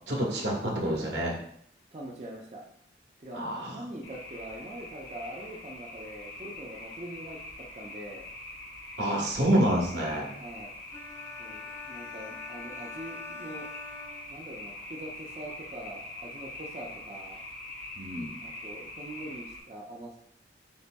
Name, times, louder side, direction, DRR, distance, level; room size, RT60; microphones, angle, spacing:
voice 1, 0.1-1.4 3.3-3.8 9.0-10.3 17.9-18.4, right 1 dB, 80° right, -1 dB, 1.2 m, -28 dB
voice 2, 1.9-2.6 3.2-7.4 7.7-8.2 10.4-10.7 11.4-13.7 14.3-17.4 18.4-20.2, right 1 dB, 35° right, -3 dB, 0.6 m, -43 dB
sound 1, 4.0-19.6, left 1 dB, 65° left, 1.4 m, -44 dB
sound 2, 10.9-14.8, left 4 dB, 20° left, 0.5 m, -45 dB
5.4 x 4.3 x 2.2 m, 0.67 s
head